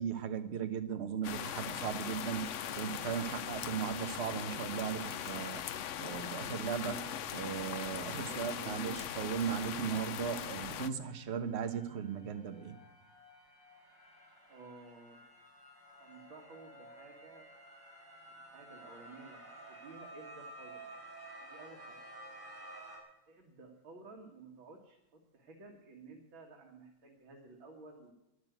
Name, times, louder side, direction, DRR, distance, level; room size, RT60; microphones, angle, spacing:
voice 1, 0.0-5.6 6.0-12.8, right 8 dB, 40° right, 8 dB, 1.2 m, -37 dB
sound 1, 1.2-10.9, left 9 dB, 85° left, 0.6 m, -40 dB
voice 2, 8.1-9.0 14.5-15.2 16.0-17.5 18.4-20.9 21.4-22.0 23.3-28.1, right 3 dB, 85° right, 0 dB, 2.7 m, -54 dB
sound 2, 9.8-23.0, right 1 dB, 10° right, 5.5 m, -53 dB
13.0 x 10.5 x 9.4 m, 0.92 s
omnidirectional pair, 2.1 m